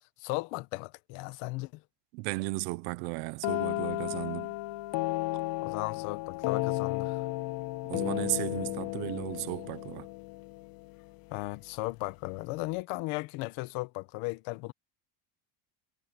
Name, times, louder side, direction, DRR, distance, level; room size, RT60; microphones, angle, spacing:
voice 1, 0.2-1.7 5.6-7.2 11.3-14.7, left 22 dB, 70° left, 1.4 m, -36 dB
voice 2, 2.1-4.6 7.9-10.1, right 23 dB, 75° right, 1.3 m, -35 dB
sound 1, 3.4-11.2, left 19 dB, 45° left, 0.7 m, -33 dB
cardioid pair, 160°, 49 cm